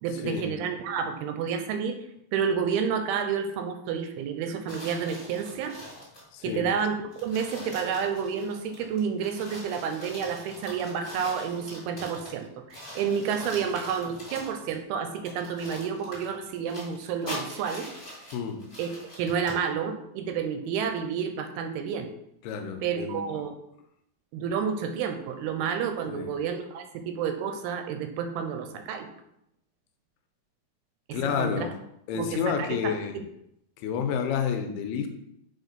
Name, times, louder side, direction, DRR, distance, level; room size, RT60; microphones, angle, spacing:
voice 1, 0.0-2.0 2.3-5.8 6.4-17.9 18.8-18.9 19.2-22.1 22.8-23.5 24.3-29.1 31.1-31.7 32.1-33.2, right 7 dB, 80° right, 7 dB, 2.5 m, -30 dB
sound 1, 4.7-6.3 6.8-6.9 7.1-12.4 12.7-14.8 15.3-19.6, equal, 15° left, 2.5 m, -43 dB
voice 2, 6.3-6.7 18.3-18.6 22.4-23.4 26.1-26.3 31.1-31.7 32.1-33.2 33.8-35.1, left 7 dB, 85° left, 6 dB, 2.7 m, -30 dB
6.4 x 4.3 x 5.2 m, 0.79 s
omnidirectional pair, 4.7 m